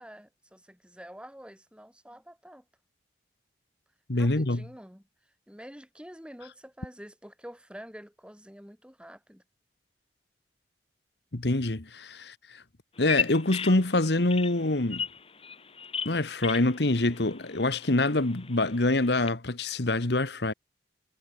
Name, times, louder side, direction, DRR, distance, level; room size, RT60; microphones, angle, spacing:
voice 1, 0.0-2.6 4.1-9.4, equal, 5° right, 6.9 m, -47 dB
voice 2, 4.1-4.6 11.3-12.6 13.0-15.0 16.0-20.5, left 2 dB, 75° left, 1.5 m, -25 dB
Bird vocalization bird call bird song, 13.0-19.3, left 6 dB, 35° left, 1.8 m, -37 dB
head